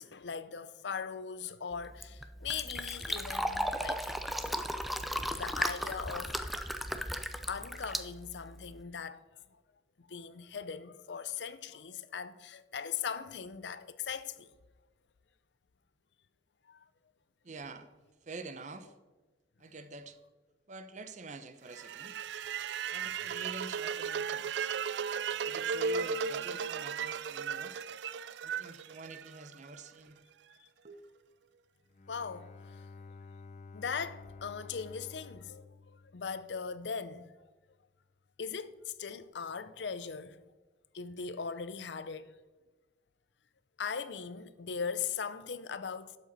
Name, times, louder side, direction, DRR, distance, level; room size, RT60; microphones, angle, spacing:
voice 1, 0.0-4.3 5.3-6.3 7.5-9.2 10.0-14.5 16.7-16.9 30.6-30.7 32.1-32.8 33.7-37.3 38.4-40.4 40.9-42.4 43.8-46.2, left 6 dB, 80° left, 0.6 m, -39 dB
Fill (with liquid), 1.7-8.8, equal, ahead, 0.5 m, -36 dB
voice 2, 17.4-17.9 18.2-18.9 19.6-20.2 20.7-22.2 22.9-24.7 25.5-27.8 28.4-30.2 30.8-31.1, right 3 dB, 45° right, 0.8 m, -47 dB
sound 1, 21.7-29.8, right 6 dB, 75° right, 0.4 m, -36 dB
Bowed string instrument, 31.9-36.8, left 3 dB, 45° left, 0.7 m, -51 dB
12.0 x 7.7 x 4.1 m
head